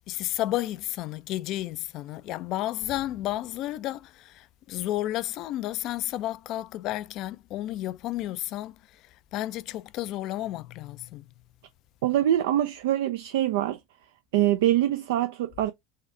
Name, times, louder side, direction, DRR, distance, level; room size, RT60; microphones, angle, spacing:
voice 1, 0.1-8.7 9.3-11.2, left 14 dB, 55° left, 0.3 m, -32 dB
voice 2, 12.0-13.8 14.3-15.7, right 12 dB, 70° right, 0.4 m, -24 dB
3.8 x 3.3 x 3.2 m
hypercardioid pair, 75°, 0 cm